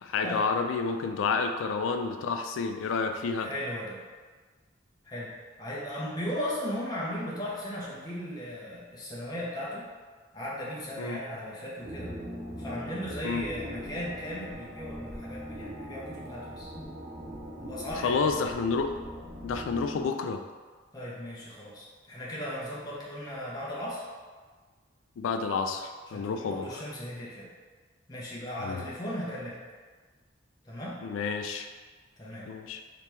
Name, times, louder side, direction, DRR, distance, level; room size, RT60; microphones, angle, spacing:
voice 1, 0.0-3.5 11.0-11.2 13.2-13.4 17.9-19.0 19.4-20.4 25.2-26.8 28.6-28.8 31.0-31.7 32.5-32.8, left 4 dB, 80° left, 6 dB, 0.3 m, -30 dB
voice 2, 3.3-4.0 5.0-9.9 10.3-12.2 12.6-16.7 17.6-18.4 20.9-24.1 26.1-27.5 28.1-29.6 30.6-31.0 32.2-32.5, equal, 20° left, -7 dB, 0.6 m, -37 dB
sound 1, 11.8-20.0, equal, 45° right, 1.2 m, -41 dB
2.9 x 2.9 x 3.3 m, 1.5 s
head